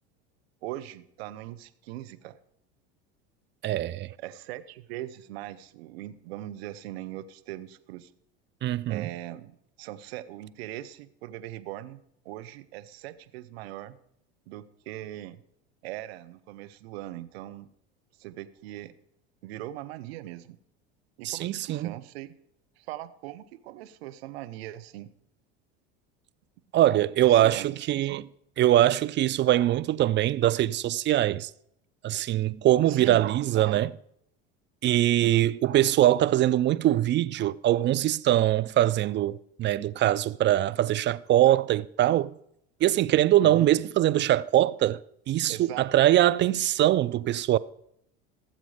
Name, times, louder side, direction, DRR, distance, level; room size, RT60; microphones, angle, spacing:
voice 1, 0.6-2.4 4.2-8.1 8.9-14.0 14.5-15.4 15.8-17.7 18.2-18.9 19.4-20.6 21.2-22.4 22.8-25.1 27.2-28.2 32.9-33.3 33.5-33.8 35.2-35.5 43.4-43.7 45.5-45.9, right 14 dB, 75° right, 0.9 m, -40 dB
voice 2, 3.6-4.1 8.6-9.1 21.2-21.9 26.7-28.2 28.6-31.5 32.0-33.9 34.8-42.3 42.8-45.0 45.3-47.6, right 13 dB, 35° right, 0.5 m, -23 dB
17.0 x 7.5 x 4.9 m
hypercardioid pair, 90°, 31 cm